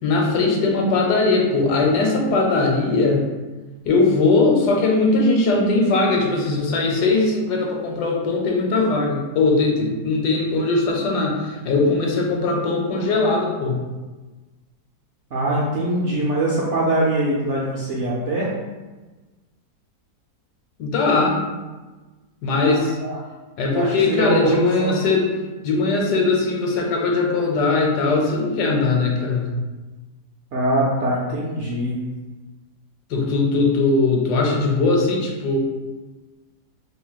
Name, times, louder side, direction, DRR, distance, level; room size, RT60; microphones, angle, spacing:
voice 1, 0.0-3.3 3.8-13.8 20.8-21.4 22.4-23.0 23.6-25.3 25.6-29.5 33.1-35.6, left 3 dB, 80° left, 0 dB, 1.2 m, -20 dB
voice 2, 15.3-18.5 22.5-22.7 23.0-23.2 23.7-24.9 30.5-32.0, right 1 dB, 65° right, -5 dB, 0.7 m, -23 dB
2.9 x 2.5 x 3.9 m, 1.2 s
omnidirectional pair, 1.8 m